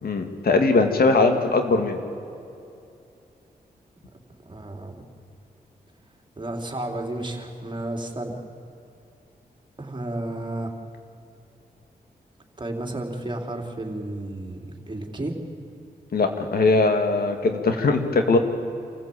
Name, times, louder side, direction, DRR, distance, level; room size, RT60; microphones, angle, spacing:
voice 1, 0.0-2.0 16.1-18.4, left 3 dB, 70° left, 5 dB, 2.3 m, -20 dB
voice 2, 4.4-5.0 6.3-8.4 9.8-10.7 12.6-14.6 14.9-15.3, right 1 dB, 30° right, 2 dB, 3.5 m, -32 dB
27.0 x 14.5 x 8.6 m, 2.6 s
cardioid pair, 60°, 16 cm